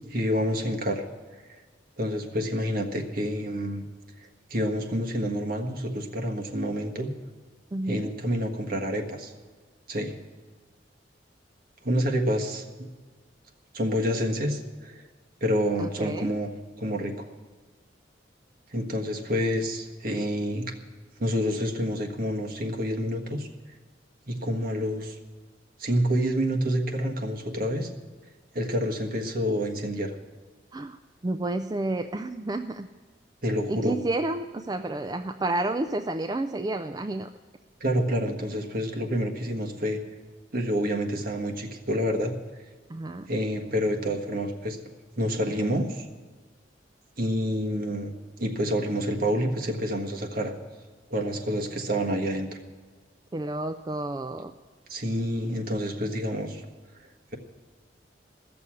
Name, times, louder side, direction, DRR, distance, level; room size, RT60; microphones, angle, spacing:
voice 1, 0.1-1.0 2.0-3.8 4.5-7.1 7.9-9.3 9.9-10.1 11.8-12.9 13.7-15.0 15.4-16.5 16.8-17.3 18.7-20.7 21.2-23.5 24.3-25.2 25.8-27.9 28.5-30.1 33.4-34.0 37.8-40.0 40.5-42.3 43.3-44.8 45.2-46.1 47.2-48.1 48.4-50.5 51.1-52.5 54.9-56.6, equal, 55° right, 3 dB, 1.5 m, -28 dB
voice 2, 7.7-8.1 15.8-16.4 30.7-32.9 33.7-37.3 42.9-43.3 53.3-54.5, right 2 dB, 20° right, 7 dB, 0.4 m, -30 dB
14.5 x 6.9 x 9.6 m, 1.4 s
head